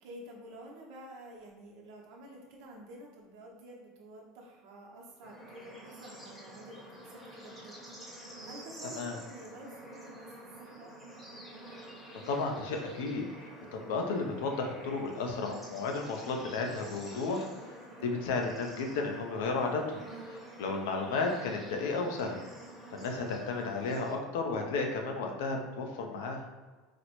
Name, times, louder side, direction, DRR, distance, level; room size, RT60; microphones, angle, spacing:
voice 1, 0.0-8.0 8.4-10.9 23.0-23.4, right 1 dB, 65° right, -1 dB, 0.8 m, -50 dB
Bird / Insect / Frog, 5.2-24.1, right 1 dB, 10° left, 0.9 m, -48 dB
voice 2, 12.3-13.2 13.7-17.5 18.0-22.4 22.9-26.4, left 3 dB, 85° left, 2 dB, 0.5 m, -33 dB
4.1 x 2.1 x 2.9 m, 1.3 s
supercardioid pair, 145°, 0 cm